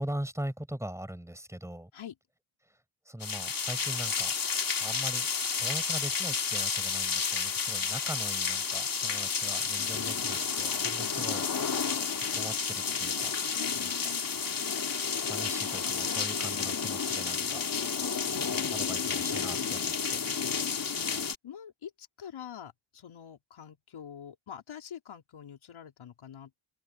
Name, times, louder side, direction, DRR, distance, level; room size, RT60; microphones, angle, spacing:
voice 1, 0.0-1.9 2.6-2.8 3.0-4.3 4.8-5.3 5.6-11.4 12.3-13.3 13.7-14.1 14.9-17.7 18.3-20.3, right 1 dB, 5° right, 6.3 m, -41 dB
sound 1, 3.2-21.3, left 6 dB, 45° left, 2.9 m, -31 dB
voice 2, 13.5-14.3 21.4-26.5, left 9 dB, 80° left, 4.4 m, -46 dB
open air
wide cardioid pair, 115°, 47 cm